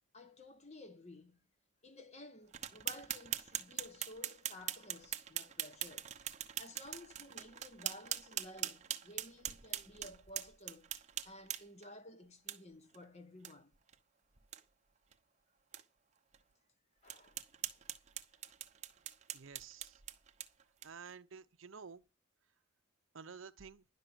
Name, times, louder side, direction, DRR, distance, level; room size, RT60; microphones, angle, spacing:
voice 1, 0.1-1.4 1.8-6.1 6.4-10.9 11.2-13.7 17.0-17.4 18.3-18.4, left 1 dB, 30° left, 1.1 m, -54 dB
sound 1, 2.5-11.9 12.5-12.6 12.9-13.0 13.4-13.5 13.9-14.0 14.4-14.6 15.1-15.2 15.7-15.8 16.3-16.4 17.1-21.1, right 11 dB, 30° right, 0.8 m, -42 dB
voice 2, 19.3-20.0 20.8-22.0 23.1-23.9, right 5 dB, 60° right, 0.7 m, -51 dB
11.5 x 5.9 x 8.7 m
head